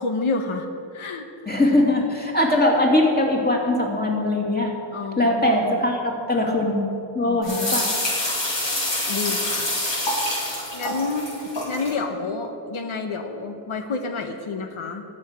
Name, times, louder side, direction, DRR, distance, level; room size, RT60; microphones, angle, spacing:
voice 1, 0.0-1.3 4.9-5.8 7.2-7.4 9.1-9.7 10.7-11.3 11.7-15.0, left 4 dB, 85° left, 5 dB, 1.0 m, -29 dB
voice 2, 1.5-4.7 5.2-6.8 7.1-7.9, left 1 dB, 20° left, -1 dB, 2.7 m, -21 dB
sound 1, 7.4-11.9, left 1 dB, 60° left, 3.9 m, -26 dB
13.5 x 6.4 x 9.9 m, 2.7 s
wide cardioid pair, 75°, 48 cm